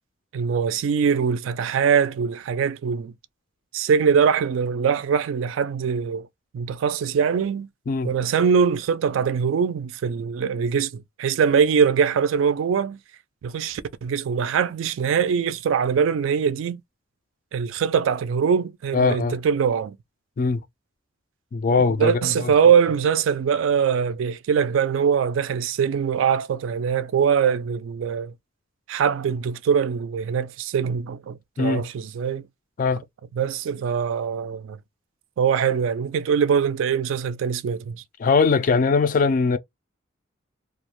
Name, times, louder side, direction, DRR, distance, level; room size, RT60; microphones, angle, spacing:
voice 1, 0.3-3.1 3.7-6.3 6.5-7.7 8.0-13.0 13.4-16.8 17.5-20.0 22.0-28.3 28.9-32.4 33.4-34.8 35.4-38.0, right 7 dB, 75° right, 0.3 m, -22 dB
voice 2, 18.9-19.4 20.4-20.6 21.5-22.5 31.6-31.8 32.8-33.0 38.2-39.6, left 4 dB, 40° left, 0.3 m, -21 dB
2.4 x 2.0 x 2.8 m
head